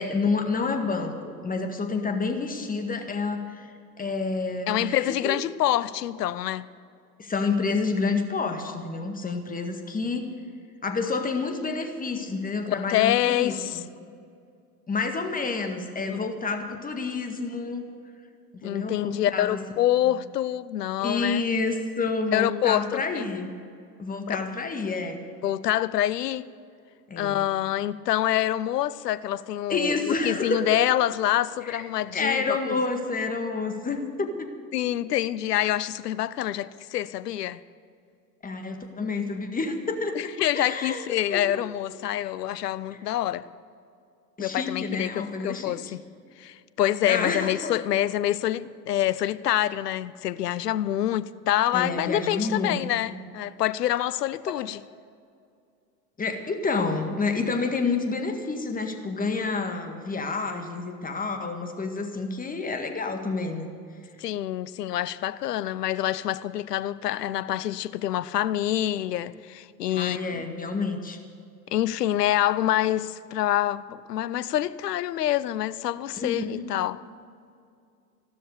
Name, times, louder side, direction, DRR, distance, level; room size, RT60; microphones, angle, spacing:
voice 1, 0.0-3.7 4.0-5.4 7.2-10.2 10.8-13.8 14.9-17.8 18.5-19.6 20.1-20.2 21.0-23.5 24.0-25.2 27.1-27.4 29.7-30.6 31.6-31.8 32.1-34.5 38.4-40.2 40.5-41.6 42.9-43.0 44.4-45.8 47.0-47.7 51.7-53.1 56.2-63.7 69.9-71.2 76.1-76.7, left 4 dB, 15° left, 1.9 m, -29 dB
voice 2, 4.7-6.7 12.7-13.8 16.1-16.2 18.6-21.4 22.3-23.3 24.3-24.4 25.4-26.5 27.2-32.8 34.7-37.6 40.1-43.5 44.4-46.0 46.4-54.8 64.2-70.5 71.7-77.0, left 12 dB, 70° left, 0.7 m, -26 dB
15.0 x 13.0 x 6.7 m
figure-of-eight pair, 80°, 49 cm